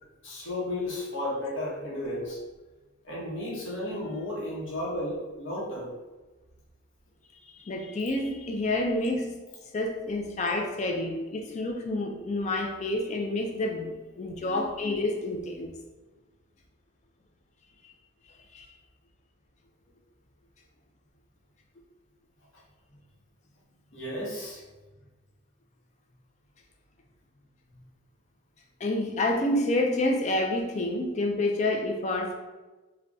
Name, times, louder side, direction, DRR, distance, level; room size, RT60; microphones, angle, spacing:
voice 1, 0.2-2.4 3.0-5.9 23.9-24.6, left 1 dB, 65° left, -5 dB, 0.9 m, -33 dB
voice 2, 7.5-9.3 9.7-15.7 17.8-17.9 18.5-18.7 28.8-32.4, left 1 dB, 35° left, 3 dB, 0.3 m, -28 dB
3.8 x 2.2 x 2.3 m, 1.2 s
head